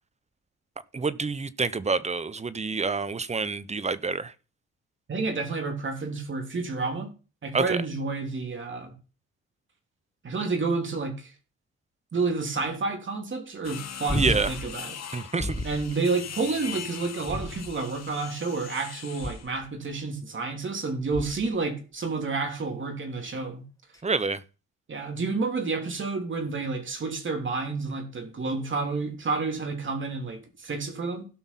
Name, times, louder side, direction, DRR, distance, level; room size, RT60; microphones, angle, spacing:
voice 1, 0.9-4.3 7.5-7.8 14.1-14.5 15.1-15.6 24.0-24.4, right 4 dB, 20° right, 0.9 m, -27 dB
voice 2, 5.1-7.1 7.4-8.9 10.2-11.3 12.1-14.9 15.6-23.6 24.9-31.3, right 3 dB, 40° right, 3.3 m, -30 dB
sound 1, 13.6-19.5, left 8 dB, 60° left, 2.1 m, -41 dB
sound 2, 14.1-14.7 15.4-15.9 17.2-18.0 19.2-19.7 21.1-21.6 23.9-24.0, left 1 dB, 10° left, 1.8 m, -32 dB
17.0 x 5.8 x 4.2 m
cardioid pair, 90°, 30 cm